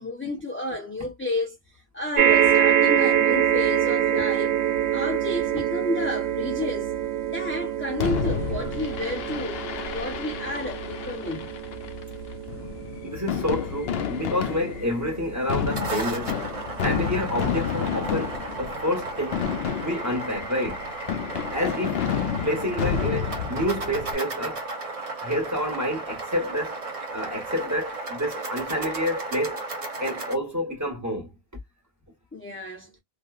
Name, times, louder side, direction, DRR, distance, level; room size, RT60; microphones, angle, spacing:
voice 1, 0.0-4.5 4.9-6.9 7.2-11.5 32.3-32.9, left 2 dB, 15° left, 0.5 m, -31 dB
sound 1, 2.2-16.7 17.5-17.6 17.8-17.9, right 10 dB, 90° right, 1.0 m, -25 dB
Fireworks, 8.0-24.1, left 8 dB, 75° left, 0.8 m, -31 dB
voice 2, 13.0-16.4 16.8-19.5 19.8-20.8 21.5-22.1 22.4-24.7 25.2-26.8 27.1-29.6 30.0-31.3, equal, 15° right, 1.2 m, -28 dB
sound 2, 15.5-30.3, right 3 dB, 40° right, 0.7 m, -34 dB
2.7 x 2.3 x 2.3 m
omnidirectional pair, 1.0 m